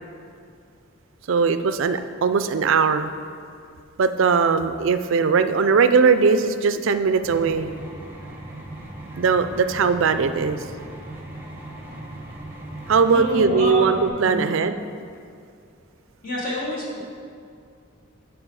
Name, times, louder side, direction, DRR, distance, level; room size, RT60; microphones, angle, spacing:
voice 1, 1.3-3.1 4.0-7.7 9.2-10.6 12.9-14.7, right 5 dB, 65° right, 10 dB, 0.4 m, -20 dB
sound 1, 7.2-14.1, right 1 dB, 10° right, 1.0 m, -38 dB
voice 2, 13.1-14.4 16.2-17.0, left 1 dB, 40° left, -5 dB, 2.0 m, -27 dB
8.8 x 4.9 x 4.8 m, 2.4 s
head